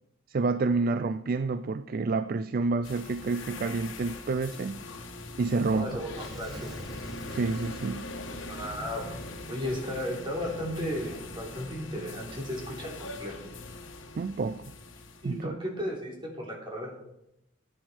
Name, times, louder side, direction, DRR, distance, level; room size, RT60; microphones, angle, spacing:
voice 1, 0.3-4.8 5.4-6.0 7.3-8.1 14.2-14.7 15.2-15.6, right 3 dB, 45° right, 13 dB, 0.4 m, -29 dB
sound 1, 2.8-15.4, left 2 dB, 70° left, 1.4 m, -42 dB
Fire / Explosion, 5.7-10.6, equal, ahead, 4.1 m, -48 dB
voice 2, 5.7-6.8 8.5-9.1 9.5-13.4 15.2-16.9, equal, 25° right, -2 dB, 3.6 m, -35 dB
14.0 x 9.8 x 4.5 m, 0.83 s
head